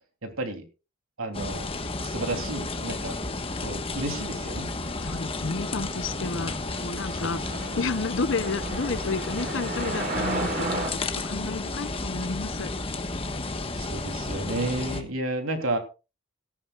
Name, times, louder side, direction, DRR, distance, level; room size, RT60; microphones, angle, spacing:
voice 1, 0.2-0.6 1.2-1.7 2.0-3.2 3.6-4.7 6.5-6.6 7.1-7.3 7.6-7.8 13.7-15.8, right 2 dB, 80° right, 3.2 m, -32 dB
sound 1, 1.3-15.0, left 2 dB, 25° left, 1.3 m, -32 dB
sound 2, 4.8-10.9, right 2 dB, 45° right, 4.8 m, -35 dB
voice 2, 5.0-7.4 7.8-12.7, left 4 dB, 60° left, 0.7 m, -31 dB
17.0 x 14.5 x 2.4 m
head